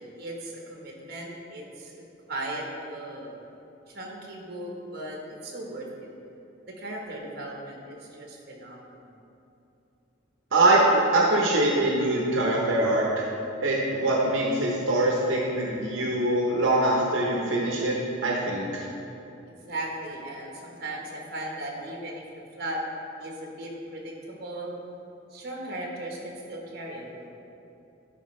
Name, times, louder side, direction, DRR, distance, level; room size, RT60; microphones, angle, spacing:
voice 1, 0.0-3.3 3.9-6.1 6.7-9.1 19.5-22.2 22.6-22.8 23.2-24.8 25.3-27.3, right 1 dB, 55° right, -1 dB, 1.1 m, -37 dB
voice 2, 10.5-13.2 13.6-17.9 18.2-18.9, right 2 dB, 75° right, -3 dB, 0.8 m, -23 dB
11.5 x 4.4 x 3.2 m, 2.8 s
head